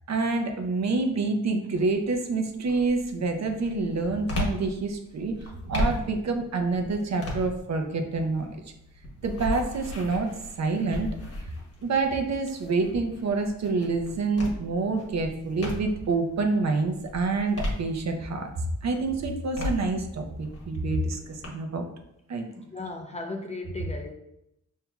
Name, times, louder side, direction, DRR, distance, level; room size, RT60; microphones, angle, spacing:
voice 1, 0.1-8.6 9.2-10.3 10.6-11.1 11.4-11.5 11.8-21.9 22.3-22.5, right 3 dB, 55° right, 5 dB, 0.6 m, -27 dB
sound 1, 1.7-2.1 2.6-16.2 16.6-18.4 18.9-21.5, left 1 dB, 45° left, 1.2 m, -36 dB
voice 2, 22.6-24.1, left 3 dB, 20° left, 3 dB, 0.4 m, -36 dB
5.6 x 2.7 x 2.2 m, 0.82 s
cardioid pair, 95°, 33 cm